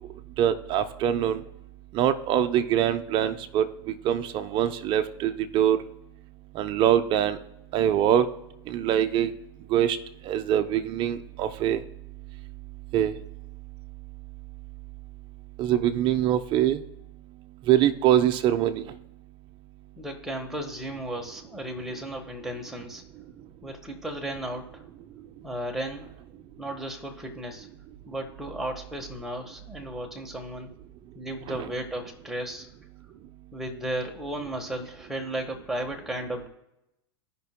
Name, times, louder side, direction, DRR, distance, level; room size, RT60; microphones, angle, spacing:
voice 1, 0.4-1.4 1.9-5.8 6.5-7.4 7.7-8.3 8.7-9.3 9.7-10.0 10.3-11.8 12.9-13.1 15.6-16.8 17.7-18.8 31.5-31.7, right 10 dB, 40° right, 9 dB, 0.7 m, -23 dB
voice 2, 20.0-23.0 23.6-24.8 25.4-26.1 26.6-27.7 28.1-30.7 31.1-32.7 33.5-36.5, right 1 dB, 5° right, 1 dB, 1.3 m, -34 dB
16.0 x 5.4 x 2.2 m, 0.86 s
hypercardioid pair, 120°, 14 cm